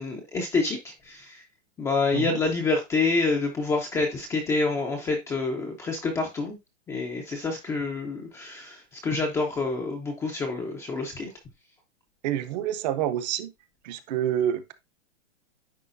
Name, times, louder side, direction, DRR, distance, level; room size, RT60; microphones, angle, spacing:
voice 1, 0.0-1.4 1.8-6.6 6.9-11.3, left 3 dB, 10° left, 0.5 m, -27 dB
voice 2, 12.2-13.5 13.8-14.7, right 10 dB, 35° right, 0.7 m, -28 dB
9.8 x 3.8 x 2.5 m
hypercardioid pair, 155°, 37 cm